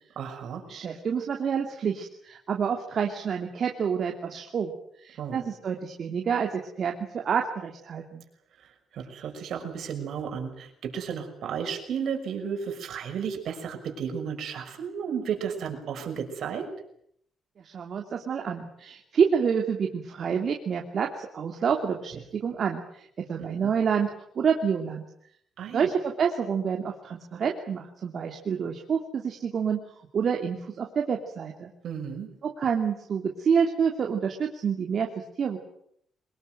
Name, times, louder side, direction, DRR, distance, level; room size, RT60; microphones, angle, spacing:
voice 1, 0.2-0.6 5.2-5.4 8.6-16.7 23.4-23.7 25.6-25.9 31.8-32.3, right 7 dB, 70° right, 5 dB, 6.2 m, -33 dB
voice 2, 0.7-4.7 5.0-8.2 17.6-25.0 25.7-29.8 30.1-31.7 32.4-35.6, right 6 dB, 55° right, 3 dB, 2.8 m, -28 dB
23.5 x 20.5 x 9.3 m, 0.70 s
cardioid pair, 90°, 0 cm